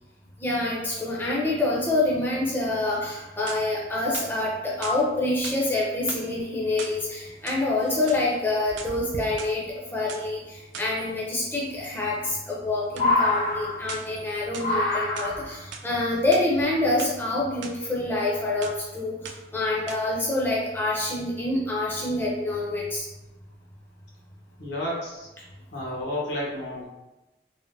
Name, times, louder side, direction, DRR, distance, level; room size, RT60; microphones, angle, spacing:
voice 1, 0.4-9.6 9.9-23.1, left 2 dB, 10° left, -5 dB, 0.4 m, -26 dB
sound 1, 3.2-3.8 4.1-5.0 5.4-5.6 6.0-7.0 7.3-8.2 8.6-9.5 10.1-10.2 10.7-11.0 12.9-13.1 13.9-14.2 14.5-15.3 15.7-15.9 16.2-17.1 17.6-17.7 18.1-18.4 18.6-18.9 19.2-19.6 19.9-20.0, right 5 dB, 85° right, 0.4 m, -40 dB
sound 2, 8.0-8.1 8.7-9.2 10.8-10.9 12.1-12.6 12.9-14.1 14.6-15.6 16.6-16.7, left 2 dB, 55° left, 0.6 m, -26 dB
voice 2, 24.6-25.3 25.7-26.8, left 1 dB, 85° left, -4 dB, 0.9 m, -31 dB
3.4 x 2.1 x 2.5 m, 1.0 s
head